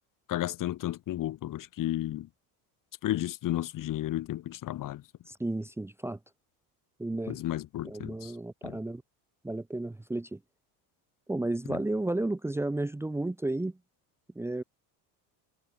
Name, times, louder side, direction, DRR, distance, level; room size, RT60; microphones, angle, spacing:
voice 1, 0.3-2.3 3.0-5.0 7.3-8.3 8.6-8.8 11.7-11.8, left 14 dB, 45° left, 2.0 m, -33 dB
voice 2, 5.3-6.2 7.0-7.4 7.8-9.0 9.4-10.4 11.3-13.8 14.3-14.6, right 2 dB, 5° right, 1.0 m, -32 dB
cardioid pair, 135°, 44 cm